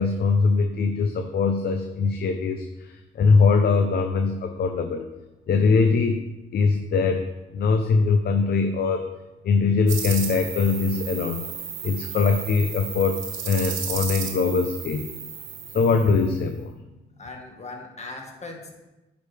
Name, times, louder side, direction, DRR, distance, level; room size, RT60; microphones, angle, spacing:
voice 1, 0.0-5.1 5.5-6.2 6.5-7.3 7.5-9.1 9.4-11.5 11.8-13.2 13.4-15.1 15.7-16.7, left 4 dB, 55° left, 6 dB, 0.6 m, -22 dB
sound 1, 9.9-16.4, right 7 dB, 75° right, 1.2 m, -34 dB
voice 2, 17.2-18.8, left 2 dB, 35° left, 1 dB, 1.6 m, -39 dB
9.2 x 5.1 x 3.4 m, 1.0 s
cardioid pair, 90°, 20 cm